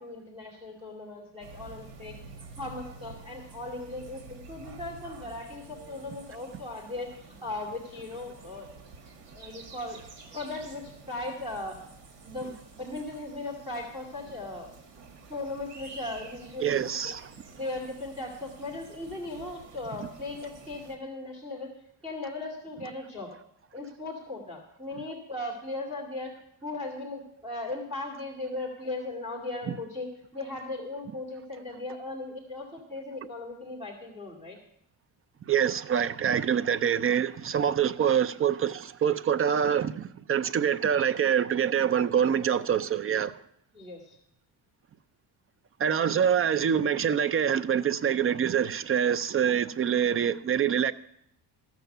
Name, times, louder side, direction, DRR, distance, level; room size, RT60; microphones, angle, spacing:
voice 1, 0.0-2.2 2.6-8.7 9.3-10.0 10.3-11.8 12.2-14.7 15.3-16.7 17.0-17.1 17.5-21.7 22.0-23.3 23.7-26.3 26.6-30.1 30.3-34.6 43.7-44.2 46.0-46.4, left 2 dB, 15° right, 2.5 m, -38 dB
sound 1, 1.4-21.0, right 4 dB, 85° right, 1.8 m, -49 dB
voice 2, 16.6-17.3 20.0-20.1 35.5-43.4 45.8-50.9, right 8 dB, 35° right, 0.5 m, -25 dB
14.5 x 6.2 x 6.7 m
cardioid pair, 115°, 41 cm